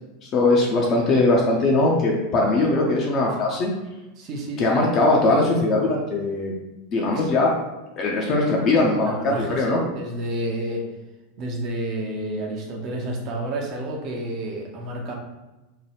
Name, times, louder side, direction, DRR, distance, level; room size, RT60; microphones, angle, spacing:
voice 1, 0.2-3.7 4.6-6.5 6.9-7.5 8.0-9.8, left 2 dB, 35° left, -2 dB, 0.5 m, -20 dB
voice 2, 4.2-4.6 7.1-7.3 9.0-10.8 11.4-15.1, right 1 dB, 40° right, 0 dB, 0.6 m, -30 dB
2.7 x 2.2 x 3.2 m, 1.1 s
figure-of-eight pair, 85°, 0 cm